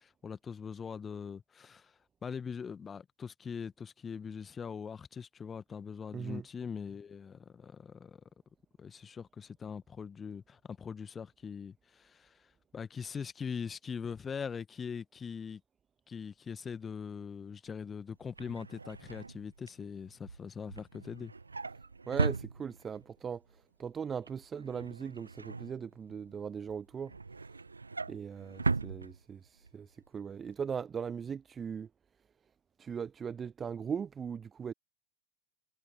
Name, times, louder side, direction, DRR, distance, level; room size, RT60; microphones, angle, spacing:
voice 1, 0.0-1.9 2.2-8.2 8.8-12.5 12.7-15.6 16.1-21.3, left 6 dB, 20° left, 1.3 m, -42 dB
voice 2, 6.1-6.4 22.1-23.4 23.8-27.1 28.1-29.9 30.1-31.9 32.8-34.7, right 7 dB, 20° right, 0.4 m, -39 dB
Drawer open or close, 18.1-23.1 23.5-23.8 24.1-26.3 26.7-29.7 30.1-30.3 30.5-30.6, right 4 dB, 80° right, 0.7 m, -38 dB
figure-of-eight pair, 90°, 0 cm